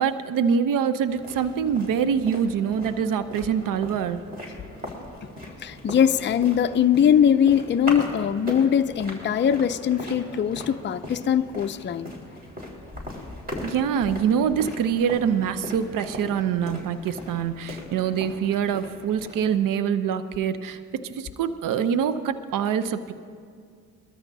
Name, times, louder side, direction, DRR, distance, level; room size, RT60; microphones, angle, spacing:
voice 1, 0.0-4.2 13.6-23.1, right 7 dB, 65° right, 12 dB, 0.7 m, -25 dB
sound 1, 1.1-19.6, left 1 dB, 25° right, 4.0 m, -39 dB
voice 2, 5.6-12.1, left 8 dB, 30° left, 9 dB, 0.5 m, -21 dB
22.0 x 13.5 x 2.7 m, 2.2 s
supercardioid pair, 70°, 36 cm